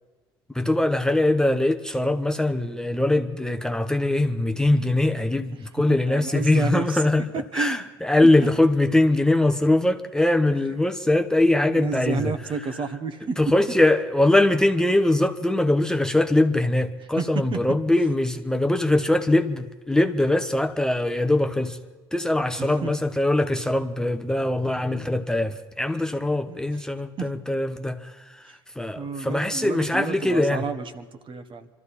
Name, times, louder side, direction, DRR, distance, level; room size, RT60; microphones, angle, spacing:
voice 1, 0.5-7.2 7.5-12.3 13.4-21.8 22.1-28.1 28.8-30.6, left 1 dB, 5° left, 0.9 m, -22 dB
voice 2, 5.5-7.0 7.3-7.8 8.2-8.3 10.5-10.8 11.7-13.5 17.0-17.6 22.4-22.9 26.5-26.8 27.2-27.3 28.4-28.6 28.9-31.7, right 5 dB, 40° right, 1.4 m, -31 dB
25.5 x 13.5 x 4.2 m
hypercardioid pair, 65°, 12 cm